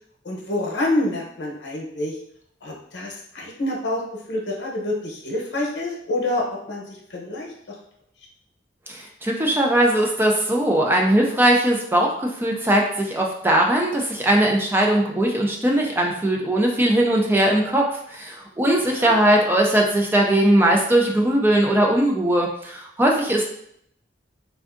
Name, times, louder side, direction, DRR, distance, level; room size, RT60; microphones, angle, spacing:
voice 1, 0.2-2.2 2.6-4.0 4.3-6.8 7.1-7.8 18.8-19.2, left 1 dB, 85° left, -1 dB, 0.8 m, -27 dB
voice 2, 8.9-23.4, right 1 dB, 10° right, 0 dB, 0.3 m, -20 dB
3.4 x 2.6 x 2.5 m, 0.71 s
head